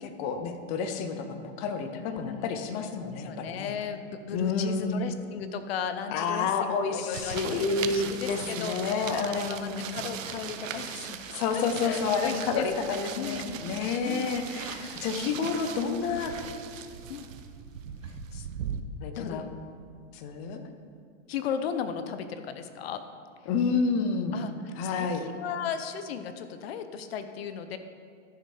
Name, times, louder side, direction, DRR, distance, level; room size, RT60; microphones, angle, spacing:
voice 1, 0.0-3.7 4.3-5.0 6.1-9.9 11.3-16.3 19.0-19.5 20.1-20.6 23.5-24.4 24.8-25.2, left 5 dB, 20° left, 7 dB, 0.5 m, -29 dB
voice 2, 2.1-2.5 3.0-8.9 9.2-13.7 14.0-14.3 14.6-15.1 15.8-16.2 17.1-17.3 18.0-18.5 19.1-19.5 21.3-23.0 24.3-24.5 24.8-27.8, left 7 dB, 50° left, 9 dB, 0.8 m, -36 dB
sound 1, 7.1-18.8, right 8 dB, 85° right, 0.9 m, -39 dB
12.5 x 6.8 x 4.9 m, 2.2 s
hypercardioid pair, 155°, 38 cm